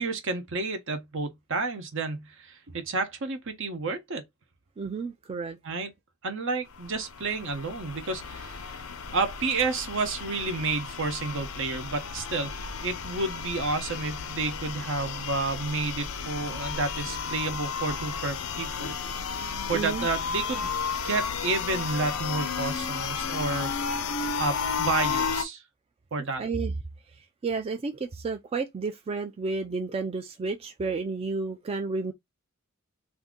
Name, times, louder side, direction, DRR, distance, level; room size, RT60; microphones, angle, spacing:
voice 1, 0.0-4.2 5.6-5.9 6.2-8.8 9.1-12.5 12.8-18.9 19.7-23.7 24.4-25.6 26.1-26.4, right 3 dB, 65° right, 0.8 m, -30 dB
voice 2, 4.8-5.6 19.7-20.1 26.4-26.7 27.2-32.1, right 4 dB, 30° right, 0.3 m, -31 dB
sound 1, 6.7-25.4, left 6 dB, 90° left, 0.6 m, -33 dB
2.7 x 2.5 x 3.6 m
head